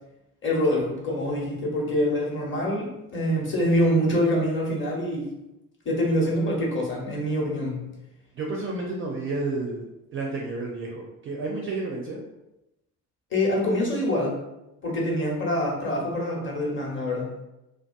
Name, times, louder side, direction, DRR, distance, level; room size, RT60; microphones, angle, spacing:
voice 1, 0.4-5.3 5.8-7.9 13.3-14.3 14.8-17.3, equal, 25° left, -3 dB, 0.9 m, -25 dB
voice 2, 8.4-9.8 10.1-12.2, right 3 dB, 30° right, -1 dB, 0.4 m, -31 dB
2.4 x 2.2 x 2.3 m, 0.93 s
figure-of-eight pair, 40°, 43 cm